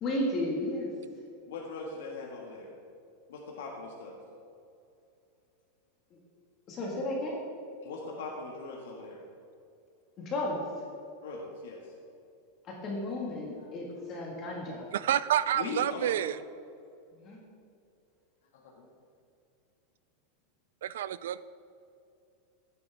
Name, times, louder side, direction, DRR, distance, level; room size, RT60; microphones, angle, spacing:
voice 1, 0.0-0.9 6.1-6.2 6.7-7.4 10.2-10.7 12.6-14.9 17.1-17.4, left 1 dB, 25° left, -2 dB, 1.8 m, -33 dB
voice 2, 1.5-2.7 3.3-4.2 7.8-9.2 11.2-11.9 13.6-13.7 15.5-16.3 18.5-18.9, left 3 dB, 80° left, -1 dB, 1.8 m, -40 dB
voice 3, 14.9-16.4 20.8-21.4, right 11 dB, 90° right, 16 dB, 0.4 m, -28 dB
15.5 x 9.8 x 3.5 m, 2.6 s
supercardioid pair, 180°, 0 cm